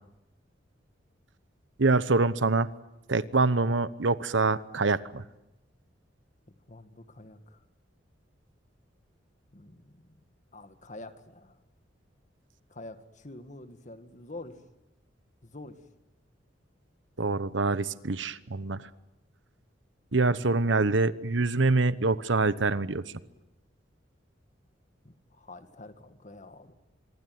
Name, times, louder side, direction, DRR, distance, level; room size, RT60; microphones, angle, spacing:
voice 1, 1.8-2.7 3.1-5.2 17.2-18.9 20.1-23.0, right 3 dB, 75° right, 16 dB, 1.0 m, -25 dB
voice 2, 6.7-7.6 9.5-10.2 10.5-11.6 12.7-14.6 15.4-15.8 25.0-26.7, left 2 dB, 40° left, 9 dB, 1.9 m, -47 dB
25.5 x 23.0 x 9.4 m, 0.97 s
head